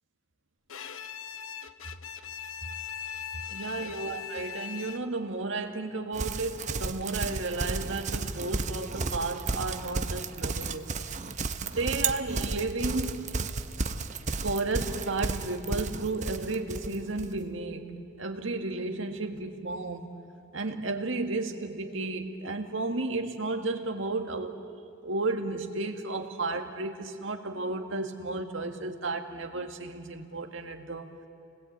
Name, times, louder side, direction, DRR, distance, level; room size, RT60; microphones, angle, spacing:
Bowed string instrument, 0.7-5.3, left 8 dB, 80° left, 1.0 m, -40 dB
voice 1, 3.5-10.9 11.6-13.2 14.3-20.1 20.5-24.6 25.0-31.1, right 3 dB, 65° right, 5 dB, 1.9 m, -33 dB
Livestock farm animals working animals, 6.1-17.3, right 3 dB, 35° right, 0.8 m, -33 dB
29.0 x 20.5 x 8.6 m, 2.7 s
head